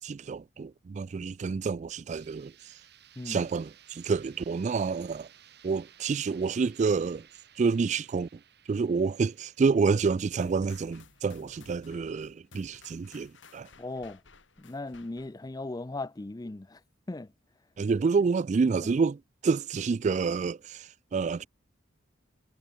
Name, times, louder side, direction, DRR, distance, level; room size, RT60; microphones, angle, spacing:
voice 1, 0.0-2.7 3.3-5.3 5.6-7.2 7.6-8.3 8.7-13.7 17.8-21.5, right 5 dB, 40° right, 0.3 m, -28 dB
sound 1, 2.1-11.9, right 10 dB, 60° right, 3.3 m, -58 dB
sound 2, 10.4-15.5, left 4 dB, 75° left, 4.6 m, -56 dB
voice 2, 13.8-14.2 14.6-16.8 17.1-17.3 18.8-18.9, left 2 dB, 20° left, 0.5 m, -38 dB
head